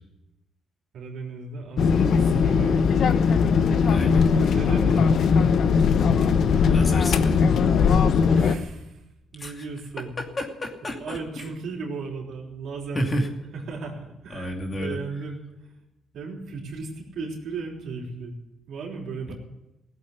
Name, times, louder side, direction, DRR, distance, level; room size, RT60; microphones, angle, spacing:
voice 1, 0.9-2.8 4.4-5.4 8.2-9.0 9.3-10.2 10.9-13.1 13.5-15.8 16.1-18.4 18.7-19.3, right 4 dB, 70° right, -1 dB, 3.6 m, -36 dB
sound 1, 1.8-8.6, left 6 dB, 65° left, 0.9 m, -19 dB
voice 2, 3.9-4.3 6.7-7.4 9.4-9.6 10.2-11.4 12.9-13.3 14.3-15.0 19.3-19.4, equal, 35° left, 2 dB, 2.6 m, -30 dB
16.5 x 8.2 x 9.7 m, 0.93 s
cardioid pair, 90°, 0 cm